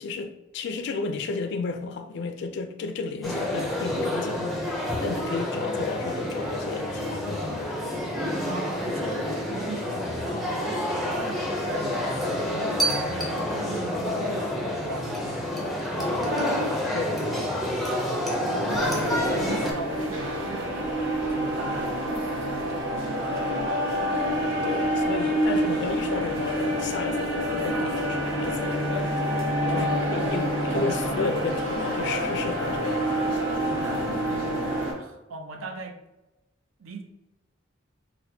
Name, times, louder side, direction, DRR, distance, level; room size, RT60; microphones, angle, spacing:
voice 1, 0.0-4.5 5.0-7.7 12.5-12.8 16.4-17.9 24.3-29.1 29.4-29.9 30.1-32.9 34.3-34.4, left 4 dB, 60° left, 0.3 m, -33 dB
sound 1, 3.2-19.7, left 1 dB, ahead, 0.5 m, -28 dB
voice 2, 8.5-10.7 11.0-12.5 12.8-15.8 17.9-20.8 21.3-23.9 29.6-31.2 33.6-36.0 36.8-37.0, right 3 dB, 85° right, 0.5 m, -39 dB
sound 2, 17.3-33.5, left 1 dB, 20° right, 1.1 m, -44 dB
sound 3, 18.7-34.9, equal, 65° right, 1.1 m, -27 dB
4.1 x 2.1 x 2.6 m
head